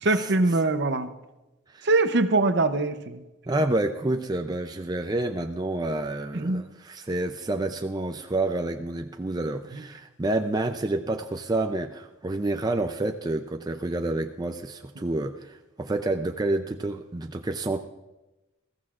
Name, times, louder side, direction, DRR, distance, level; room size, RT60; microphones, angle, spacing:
voice 1, 0.0-1.1 1.8-3.2 6.3-6.6 9.7-9.8, right 2 dB, 55° right, 10 dB, 0.7 m, -23 dB
voice 2, 3.5-17.8, right 2 dB, 20° right, 5 dB, 0.4 m, -29 dB
20.5 x 15.0 x 2.5 m, 1.0 s
head